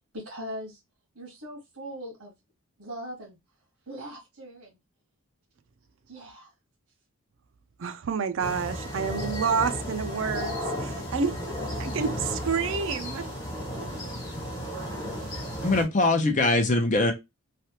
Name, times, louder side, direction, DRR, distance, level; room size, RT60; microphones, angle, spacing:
voice 1, 0.1-0.8 1.1-2.3 2.8-3.4 3.9-4.8 6.1-6.5 15.2-15.5, equal, 90° right, 1.3 m, -40 dB
voice 2, 7.8-11.5 11.8-13.2, right 6 dB, 60° right, 0.4 m, -29 dB
sound 1, 8.4-15.8, equal, 20° left, 1.3 m, -34 dB
voice 3, 15.6-17.1, left 2 dB, 35° left, 0.6 m, -22 dB
3.2 x 2.3 x 2.8 m
head